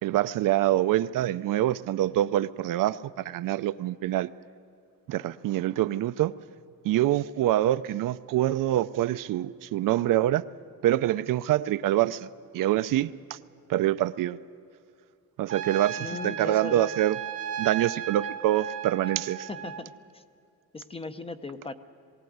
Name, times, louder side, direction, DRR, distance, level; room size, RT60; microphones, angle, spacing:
voice 1, 0.0-4.3 5.1-6.3 6.8-10.4 10.8-12.3 12.5-13.4 13.7-14.4 15.4-17.2 17.6-19.5, right 13 dB, 60° right, 14 dB, 0.5 m, -25 dB
Trumpet, 15.5-19.8, right 8 dB, 40° right, 0.9 m, -35 dB
voice 2, 16.0-16.9 19.5-20.2 20.7-21.7, left 3 dB, 15° left, 10 dB, 0.6 m, -38 dB
21.5 x 16.0 x 9.4 m, 2.5 s
cardioid pair, 160°, 36 cm